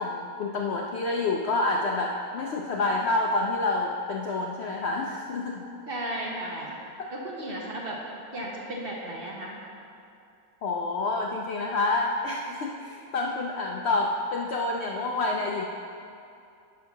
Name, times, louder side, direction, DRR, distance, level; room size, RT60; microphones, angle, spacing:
voice 1, 0.0-5.6 7.0-7.1 10.6-15.7, left 2 dB, 85° left, 0 dB, 0.5 m, -28 dB
voice 2, 5.9-6.8 7.1-8.0 8.3-9.6, right 1 dB, 40° right, -2 dB, 1.0 m, -34 dB
9.6 x 3.7 x 5.9 m, 2.6 s
omnidirectional pair, 1.7 m